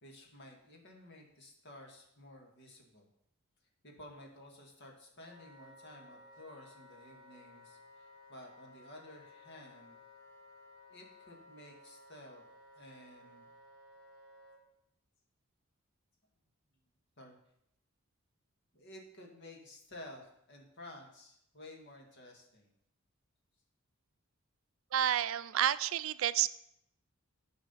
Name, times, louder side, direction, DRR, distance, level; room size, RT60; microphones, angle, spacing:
voice 1, 0.0-3.1 3.8-10.0 10.9-12.4 12.7-13.5 17.2-17.4 18.7-22.7, left 1 dB, 55° left, 1 dB, 2.0 m, -53 dB
Wind instrument woodwind instrument, 5.3-14.6, left 2 dB, 20° right, 2.2 m, -57 dB
voice 2, 24.9-26.5, right 10 dB, 65° right, 15 dB, 0.4 m, -30 dB
10.5 x 5.1 x 5.6 m, 0.78 s
head